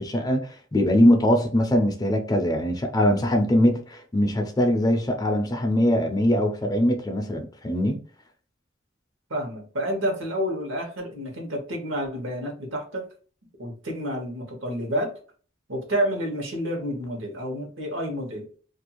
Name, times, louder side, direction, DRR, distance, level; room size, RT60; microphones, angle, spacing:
voice 1, 0.0-8.0, left 1 dB, 20° left, 0.4 m, -22 dB
voice 2, 9.3-13.1 13.6-15.1 15.7-18.5, equal, 80° right, 1.0 m, -29 dB
2.5 x 2.3 x 2.9 m
head